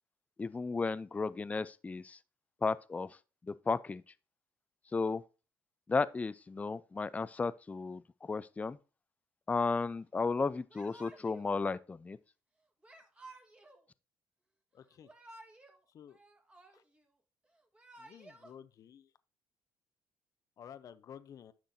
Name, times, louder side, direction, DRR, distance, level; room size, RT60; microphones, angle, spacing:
voice 1, 0.4-2.2 2.6-3.2 3.4-4.0 4.9-5.2 5.9-8.8 9.5-12.2, left 4 dB, 20° left, 0.4 m, -34 dB
Yell / Crying sobbing, 10.7-11.5 12.8-13.8 14.9-15.8 16.1-17.1 17.6-18.5, right 2 dB, 15° right, 1.5 m, -55 dB
voice 2, 14.7-15.1 15.9-16.2 16.7-16.8 18.0-19.1 20.6-21.5, left 8 dB, 55° left, 0.7 m, -52 dB
10.5 x 6.0 x 2.7 m
supercardioid pair, 75°, 7 cm